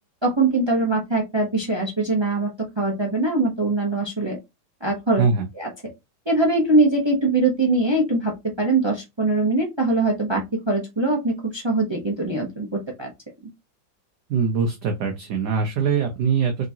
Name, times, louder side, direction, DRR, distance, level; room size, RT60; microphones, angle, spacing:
voice 1, 0.2-2.5 2.8-4.4 4.8-5.2 5.6-5.7 6.3-13.1, right 2 dB, 30° right, 1 dB, 0.4 m, -22 dB
voice 2, 14.3-16.7, right 5 dB, 65° right, 4 dB, 1.1 m, -22 dB
3.8 x 3.7 x 2.8 m, 0.22 s
omnidirectional pair, 2.3 m